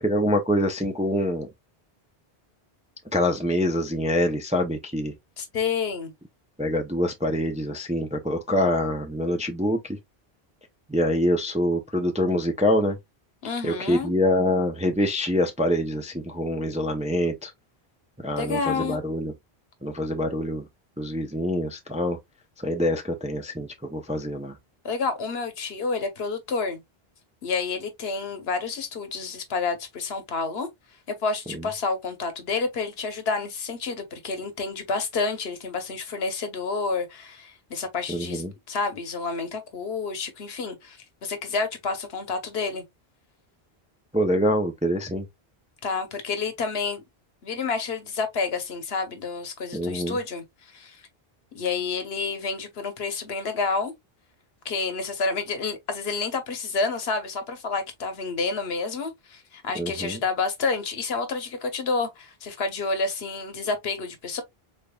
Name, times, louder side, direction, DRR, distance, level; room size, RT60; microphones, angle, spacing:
voice 1, 0.0-1.5 3.1-5.1 6.6-10.0 10.9-13.0 13.6-17.5 18.2-19.3 19.8-20.6 21.0-22.2 22.6-24.5 31.5-31.7 38.1-38.5 44.1-45.3 49.7-50.2 59.7-60.2, equal, 10° right, 0.4 m, -25 dB
voice 2, 5.4-6.1 13.4-14.1 18.4-19.0 24.8-26.8 27.4-30.7 31.1-42.8 45.8-47.0 47.4-51.0 51.5-53.9 54.6-64.4, left 4 dB, 75° left, 1.1 m, -29 dB
3.9 x 3.4 x 2.2 m
omnidirectional pair, 1.0 m